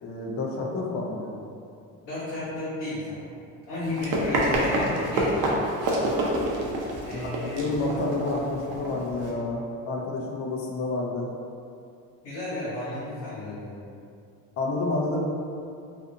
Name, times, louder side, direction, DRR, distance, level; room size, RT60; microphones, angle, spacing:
voice 1, 0.0-1.3 7.1-7.3 7.5-11.3 14.6-15.4, left 2 dB, 40° left, -2 dB, 0.5 m, -29 dB
voice 2, 2.0-3.2 3.7-5.6 7.0-7.7 12.2-13.8, left 2 dB, 70° left, -11 dB, 1.1 m, -33 dB
Run, 3.8-9.3, right 1 dB, 55° right, 0.6 m, -27 dB
2.5 x 2.4 x 2.6 m, 2.4 s
supercardioid pair, 95°, 38 cm